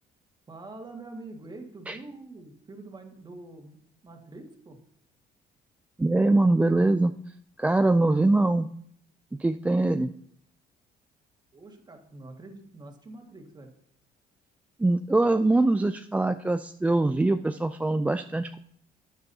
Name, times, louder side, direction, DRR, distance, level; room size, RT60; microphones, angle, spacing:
voice 1, 0.5-4.8 11.5-13.7, right 2 dB, 25° right, 3 dB, 1.8 m, -45 dB
voice 2, 6.0-8.7 9.4-10.1 14.8-18.6, right 2 dB, 10° right, 8 dB, 0.3 m, -23 dB
12.5 x 9.5 x 2.8 m, 0.65 s
cardioid pair, 110°, 17 cm